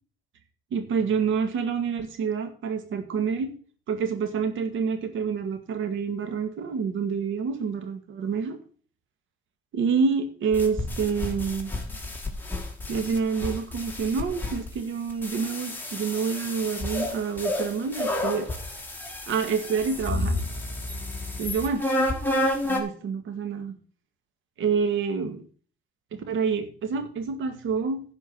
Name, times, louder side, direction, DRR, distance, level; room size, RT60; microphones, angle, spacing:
voice 1, 0.7-3.5 3.9-8.6 9.7-11.7 12.9-18.5 19.3-20.3 21.4-21.9 22.7-23.7 24.6-25.4 26.1-28.0, right 6 dB, 80° right, 8 dB, 2.0 m, -27 dB
sound 1, 10.5-14.7 15.1-22.8, left 1 dB, 10° left, 2.7 m, -30 dB
10.5 x 5.2 x 8.1 m, 0.43 s
cardioid pair, 90°, 20 cm